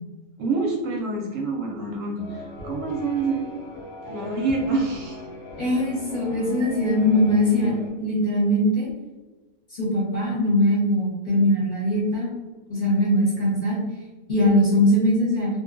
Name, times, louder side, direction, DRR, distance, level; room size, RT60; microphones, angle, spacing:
voice 1, 0.4-3.5 4.1-5.2, right 3 dB, 70° right, 0 dB, 0.9 m, -27 dB
sound 1, 2.2-7.9, left 1 dB, 70° left, 1.1 m, -39 dB
voice 2, 5.6-8.9 9.8-12.3 12.7-13.8 14.3-15.5, left 1 dB, 40° left, -7 dB, 0.8 m, -21 dB
2.7 x 2.2 x 2.4 m, 1.2 s
omnidirectional pair, 1.5 m